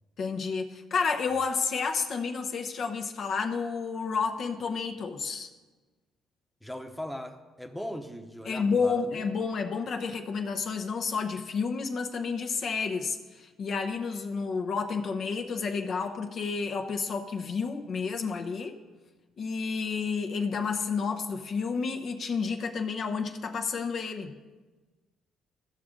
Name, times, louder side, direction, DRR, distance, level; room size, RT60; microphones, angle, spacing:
voice 1, 0.2-5.5 8.4-18.8 19.4-24.3, left 5 dB, 55° left, 4 dB, 0.8 m, -30 dB
voice 2, 6.6-9.3, equal, ahead, 4 dB, 0.9 m, -39 dB
15.0 x 6.0 x 3.8 m, 1.3 s
cardioid pair, 85°, 0 cm